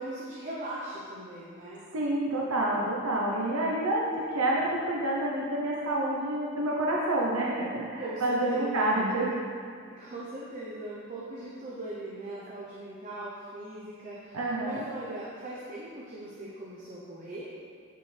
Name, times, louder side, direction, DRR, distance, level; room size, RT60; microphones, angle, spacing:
voice 1, 0.0-1.8 7.9-8.9 9.9-17.5, right 1 dB, 35° right, -6 dB, 0.9 m, -40 dB
voice 2, 1.9-9.4 14.3-14.9, right 1 dB, 80° right, -3 dB, 0.9 m, -28 dB
9.8 x 5.5 x 3.4 m, 2.3 s
head